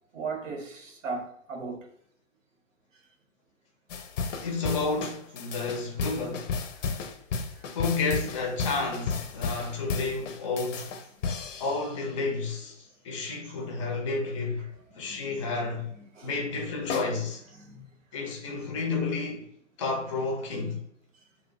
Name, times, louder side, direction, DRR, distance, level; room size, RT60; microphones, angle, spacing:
voice 1, 0.1-1.8 13.5-13.9 15.0-15.7 16.0-16.3 16.6-16.7 17.5-17.8, right 4 dB, 85° right, 0.8 m, -38 dB
sound 1, 3.9-12.1 16.9-17.0, left 5 dB, 80° left, 0.5 m, -33 dB
voice 2, 4.4-6.5 7.7-10.9 11.6-12.8 13.0-14.7 14.9-15.9 16.2-17.4 18.1-19.5 19.8-20.8, left 3 dB, 25° left, 0.4 m, -31 dB
2.8 x 2.0 x 2.5 m
hypercardioid pair, 140°, 37 cm